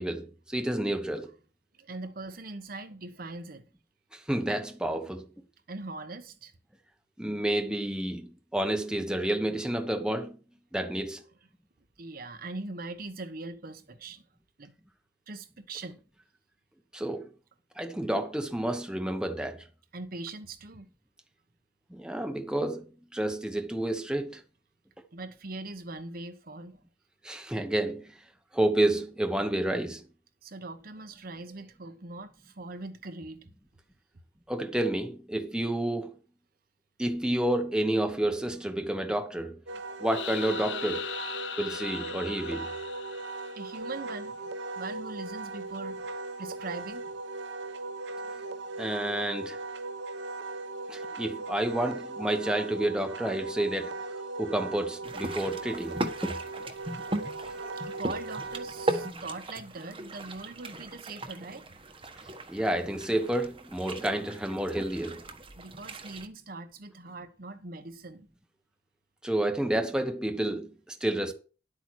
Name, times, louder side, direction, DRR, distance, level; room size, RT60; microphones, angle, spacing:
voice 1, 0.0-1.3 4.1-5.3 7.2-10.4 10.7-11.2 16.9-17.3 17.8-19.6 21.9-24.4 27.2-28.1 28.5-30.0 34.5-36.1 37.0-39.6 40.0-41.1 41.6-42.7 48.3-48.4 48.8-49.6 50.9-56.4 57.4-57.7 62.5-65.2 69.2-71.3, right 1 dB, 5° right, 1.1 m, -30 dB
voice 2, 1.7-3.6 5.7-6.5 12.0-14.2 14.6-14.7 15.3-16.0 19.9-20.9 25.1-26.8 30.4-33.5 43.5-44.4 44.8-47.0 49.8-49.9 56.0-56.1 56.9-57.0 57.4-61.9 65.5-68.3, right 2 dB, 50° right, 1.1 m, -41 dB
Wind instrument woodwind instrument, 39.7-59.1, right 3 dB, 75° right, 0.9 m, -38 dB
sound 1, 40.1-43.9, left 9 dB, 75° left, 0.8 m, -39 dB
sound 2, 55.0-66.3, right 1 dB, 30° right, 1.3 m, -38 dB
11.0 x 8.4 x 4.7 m
head